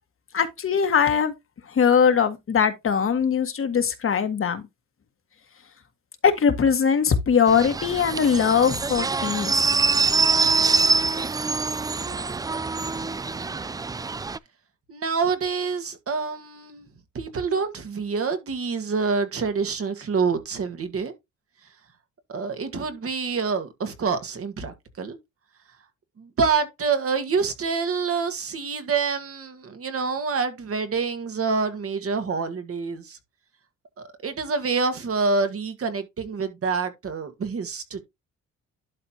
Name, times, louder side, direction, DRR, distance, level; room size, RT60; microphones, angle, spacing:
voice 1, 0.3-1.3 1.7-4.6 6.2-9.6, left 6 dB, 45° left, 1.6 m, -21 dB
sound 1, 7.5-14.4, right 4 dB, 15° right, 0.3 m, -24 dB
voice 2, 14.9-16.9 17.1-21.1 22.3-25.2 26.2-33.2 34.0-38.0, right 5 dB, 50° right, 1.9 m, -27 dB
12.0 x 4.3 x 2.9 m
cardioid pair, 90°, 30 cm